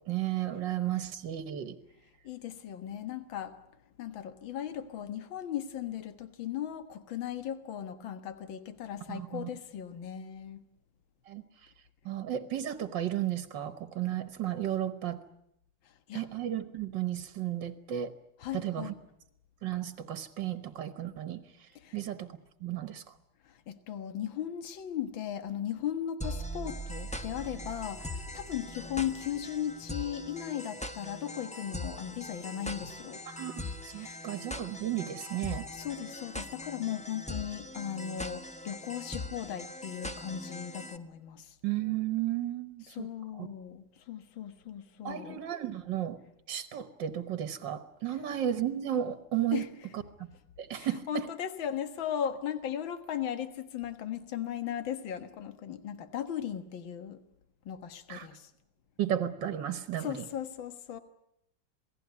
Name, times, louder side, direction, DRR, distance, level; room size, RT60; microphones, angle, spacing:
voice 1, 0.1-1.8 9.1-9.5 11.3-11.4 12.1-15.2 16.1-18.1 18.5-18.9 19.6-21.4 21.9-22.3 22.6-23.0 33.3-35.7 41.6-43.1 43.4-43.5 45.0-46.2 46.5-49.6 50.2-50.3 50.6-51.3 58.1-58.3 59.0-60.3, right 11 dB, 65° right, 1.8 m, -33 dB
voice 2, 2.2-3.6 4.0-10.6 16.1-16.3 18.4-19.0 21.8-22.0 23.5-33.2 34.0-34.3 35.7-41.6 42.9-45.4 49.5-49.7 50.7-57.2 57.7-58.5 60.0-61.0, left 10 dB, 70° left, 2.2 m, -37 dB
sound 1, 26.2-41.0, left 1 dB, 5° left, 0.5 m, -41 dB
27.5 x 18.5 x 9.5 m
omnidirectional pair, 2.2 m